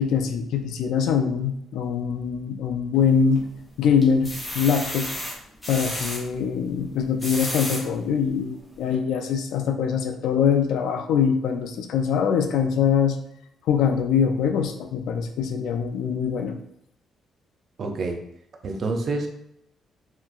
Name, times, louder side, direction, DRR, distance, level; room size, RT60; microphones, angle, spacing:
voice 1, 0.0-3.4 3.8-5.1 5.7-13.2 13.7-16.6, left 7 dB, 80° left, 7 dB, 0.3 m, -23 dB
sound 1, 2.9-3.5 4.0-6.2 7.0-7.8 8.4-8.5 8.9-9.0, equal, 15° left, 0.9 m, -32 dB
voice 2, 17.8-18.2 18.6-19.3, right 3 dB, 55° right, 3 dB, 0.5 m, -27 dB
3.0 x 2.9 x 2.4 m, 0.77 s
cardioid pair, 90°, 0 cm